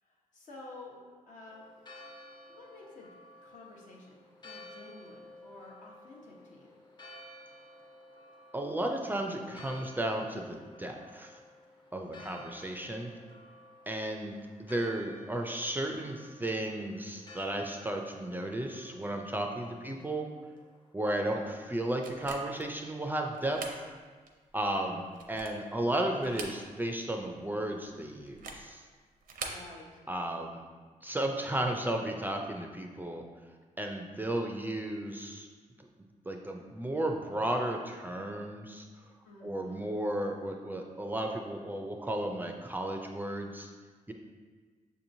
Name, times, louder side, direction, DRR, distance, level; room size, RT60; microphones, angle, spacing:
voice 1, 0.1-1.0 1.3-1.6 2.5-3.1 3.4-6.8 12.0-12.4 24.7-25.0 29.5-30.0 39.2-39.9, left 2 dB, 70° left, -3 dB, 1.0 m, -51 dB
Church bell, 1.5-20.9, left 1 dB, 35° left, 0.7 m, -53 dB
voice 2, 8.5-11.4 11.9-13.1 13.9-20.3 20.9-23.6 24.5-25.0 25.3-28.8 30.1-30.6 31.0-33.2 33.8-35.5 36.3-38.9 39.4-43.7 44.1-44.2, right 1 dB, 15° right, 2 dB, 0.4 m, -34 dB
sound 1, 22.0-22.7 23.3-23.8 24.3-24.4 25.0-25.7 26.2-27.0 27.2-27.3 28.3-28.7 29.2-29.7, right 4 dB, 85° right, 0.5 m, -42 dB
6.6 x 2.9 x 2.6 m, 1.5 s
cardioid pair, 100°, 14 cm